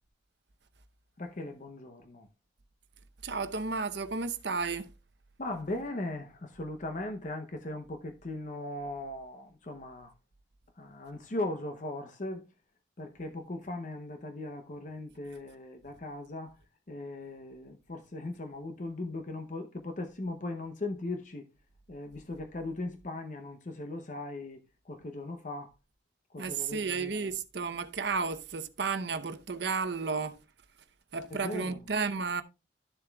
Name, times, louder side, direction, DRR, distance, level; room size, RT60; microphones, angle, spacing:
voice 1, 1.2-2.3 5.4-10.1 10.8-12.4 13.0-16.6 16.9-21.5 21.9-25.7 26.3-27.3 31.3-31.8, left 2 dB, 40° left, 0.7 m, -38 dB
voice 2, 3.2-4.9 26.4-30.4 31.1-32.4, right 4 dB, 60° right, 0.7 m, -32 dB
12.0 x 7.1 x 2.3 m
head